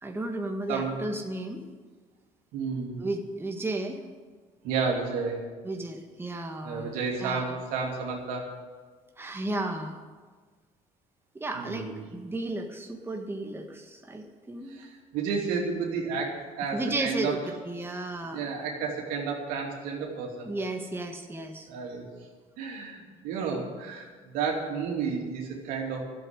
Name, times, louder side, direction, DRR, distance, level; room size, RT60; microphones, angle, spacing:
voice 1, 0.0-1.6 3.0-4.0 5.6-6.9 7.2-7.6 9.2-10.0 11.3-14.8 16.7-18.5 20.4-21.7, right 2 dB, 15° right, 3 dB, 1.6 m, -34 dB
voice 2, 0.7-1.0 2.5-3.1 4.6-5.4 6.6-8.5 11.5-12.1 14.7-17.5 18.3-20.5 21.7-22.0 22.6-26.0, right 5 dB, 85° right, 0 dB, 2.8 m, -31 dB
12.0 x 7.9 x 9.8 m, 1.4 s
supercardioid pair, 85°, 14 cm